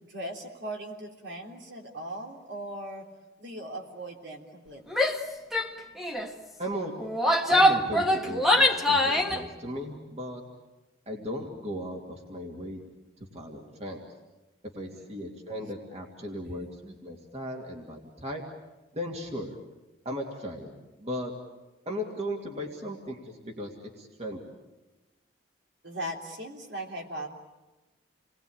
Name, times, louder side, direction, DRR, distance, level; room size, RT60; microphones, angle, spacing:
voice 1, 0.1-3.1 3.4-5.0 14.9-15.1 16.4-16.7 25.8-27.3, right 1 dB, 65° right, 1 dB, 3.5 m, -39 dB
Female speech woman speaking / Yell, 4.9-5.2 5.5-5.7 6.0-6.3 7.0-9.4, left 1 dB, ahead, 1.5 m, -23 dB
voice 2, 6.6-6.9 7.5-10.4 11.1-12.8 13.3-14.0 14.7-18.4 18.9-19.6 20.0-20.7 21.0-21.3 21.9-23.7 24.0-24.5, equal, 35° right, 1 dB, 2.6 m, -36 dB
28.5 x 21.0 x 8.9 m, 1.1 s
head